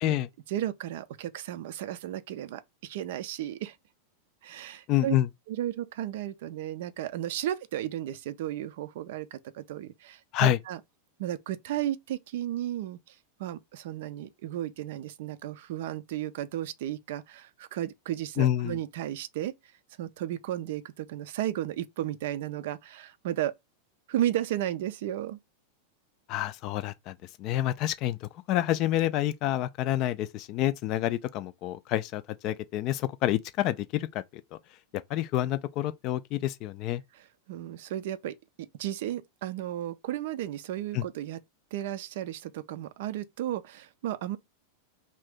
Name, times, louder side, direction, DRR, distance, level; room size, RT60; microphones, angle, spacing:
voice 1, 0.5-3.8 4.4-5.1 5.5-10.8 11.2-13.1 13.4-19.5 20.0-23.5 24.1-25.4 37.1-41.4 41.7-44.4, right 12 dB, 55° right, 0.3 m, -34 dB
voice 2, 4.9-5.3 10.3-10.6 18.4-18.8 26.3-34.2 35.1-37.0 40.9-41.0, left 13 dB, 40° left, 0.3 m, -28 dB
2.8 x 2.6 x 3.4 m
figure-of-eight pair, 90°, 0 cm